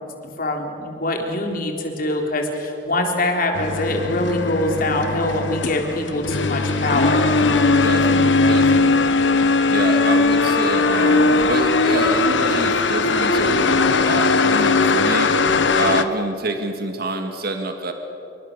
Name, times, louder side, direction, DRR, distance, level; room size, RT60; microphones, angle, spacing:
voice 1, 0.4-7.3, left 1 dB, 55° left, 2 dB, 3.7 m, -23 dB
coffee machine, 3.5-16.0, left 3 dB, 90° left, 1.1 m, -19 dB
voice 2, 7.8-9.1 9.7-15.3 15.7-17.9, right 2 dB, 60° right, 5 dB, 2.0 m, -27 dB
27.5 x 23.0 x 6.8 m, 2.9 s
head